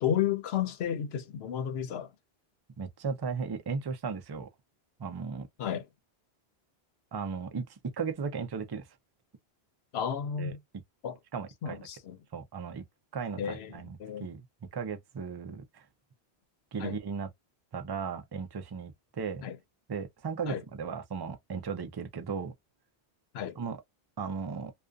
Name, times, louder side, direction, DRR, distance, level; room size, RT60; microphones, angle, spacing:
voice 1, 0.0-2.1 5.6-5.9 9.9-10.6 11.0-11.2 11.6-12.2 13.4-14.3 16.8-17.0 19.4-19.6 20.5-20.6 23.3-23.6, left 9 dB, 75° left, 0.8 m, -32 dB
voice 2, 2.8-4.5 5.0-5.5 7.1-8.9 10.4-10.8 11.3-11.8 12.3-12.8 13.1-15.9 16.7-17.3 17.7-19.4 19.9-22.5 23.6-23.8 24.2-24.7, right 5 dB, 35° right, 0.4 m, -36 dB
2.5 x 2.4 x 2.3 m
omnidirectional pair, 1.1 m